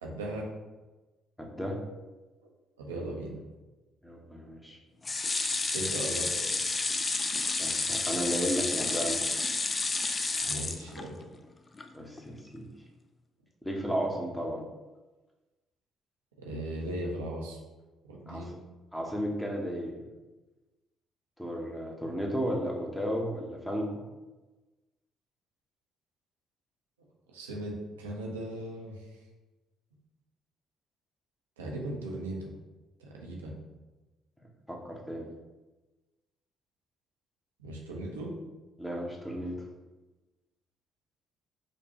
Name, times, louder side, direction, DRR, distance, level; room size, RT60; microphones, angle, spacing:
voice 1, 0.0-0.4 2.4-2.5 2.8-3.4 5.7-6.4 10.4-11.2 16.4-17.6 18.0-18.5 27.3-29.1 31.6-32.5 33.0-33.6 37.6-38.3, right 1 dB, 85° right, -2 dB, 0.6 m, -37 dB
voice 2, 1.4-1.8 4.0-4.8 7.6-9.2 11.9-12.6 13.6-14.6 18.3-18.5 18.9-20.0 21.4-23.9 34.7-35.2 38.8-39.5, equal, 10° left, 0 dB, 0.9 m, -33 dB
sound 1, 5.0-11.4 11.8-11.9 12.2-12.3, left 3 dB, 30° left, 0.3 m, -30 dB
5.1 x 2.2 x 2.9 m, 1.2 s
hypercardioid pair, 50°, 0 cm